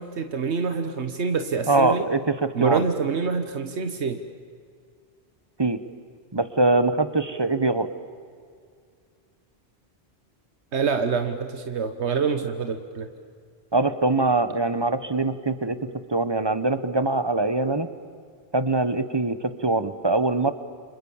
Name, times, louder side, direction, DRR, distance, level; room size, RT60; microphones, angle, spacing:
voice 1, 0.0-2.1 2.5-4.2 10.7-13.1, right 5 dB, 85° right, 7 dB, 1.5 m, -26 dB
voice 2, 1.7-2.8 5.6-5.8 6.3-7.9 13.7-17.9 18.5-20.5, right 2 dB, 25° right, 11 dB, 1.2 m, -23 dB
29.5 x 26.5 x 7.3 m, 2.2 s
omnidirectional pair, 1.1 m